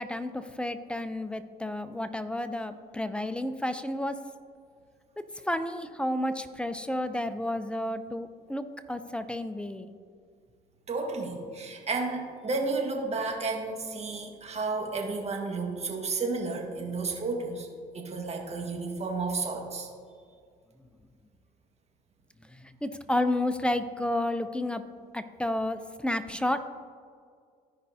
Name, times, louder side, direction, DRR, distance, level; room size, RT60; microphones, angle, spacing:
voice 1, 0.0-4.2 5.5-9.9 22.5-24.8 25.1-26.6, left 1 dB, 5° left, 10 dB, 0.5 m, -31 dB
voice 2, 10.9-17.7 17.9-19.9, right 3 dB, 40° right, 1 dB, 1.7 m, -32 dB
14.0 x 5.2 x 2.8 m, 2.1 s
supercardioid pair, 80°, 18 cm